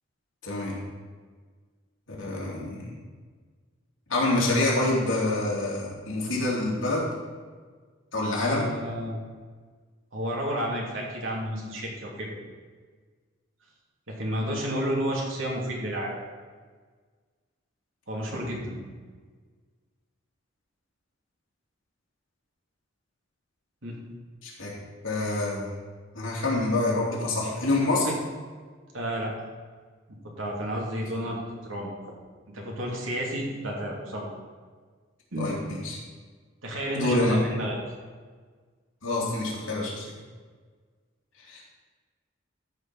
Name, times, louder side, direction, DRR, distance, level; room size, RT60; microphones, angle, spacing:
voice 1, 0.4-0.8 2.1-3.0 4.1-7.1 8.1-8.6 24.4-24.7 25.0-25.7 26.1-28.1 35.3-36.0 36.9-37.4 39.0-40.0 41.5-41.7, left 2 dB, 85° left, -4 dB, 3.0 m, -26 dB
voice 2, 8.4-9.2 10.1-12.4 14.1-16.2 18.1-18.8 23.8-24.0 28.0-28.1 28.9-29.3 30.1-31.9 32.5-34.3 35.3-35.5 36.6-37.8, equal, 80° right, -2 dB, 2.6 m, -31 dB
13.5 x 4.8 x 5.9 m, 1.5 s
head